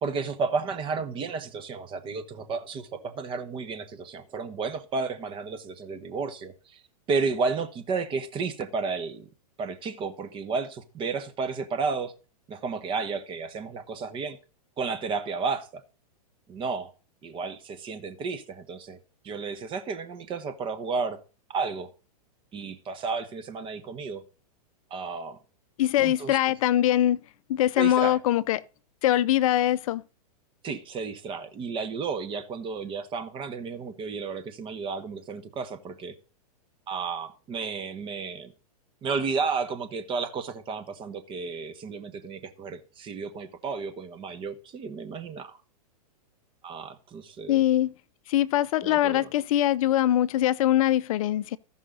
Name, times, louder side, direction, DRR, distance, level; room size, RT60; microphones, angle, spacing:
voice 1, 0.0-6.8 7.1-9.3 9.6-12.1 12.5-14.4 14.8-15.8 16.5-16.9 17.2-21.2 21.5-21.9 22.5-24.2 24.9-25.4 26.0-26.4 27.8-28.2 30.6-36.2 36.9-38.5 39.0-45.6 46.6-47.6 48.8-49.3, right 4 dB, 25° right, 1.1 m, -32 dB
voice 2, 25.8-27.2 27.5-28.6 29.0-30.0 47.5-47.9 48.3-51.6, left 12 dB, 60° left, 0.5 m, -23 dB
14.5 x 5.5 x 3.9 m
hypercardioid pair, 125°, 20 cm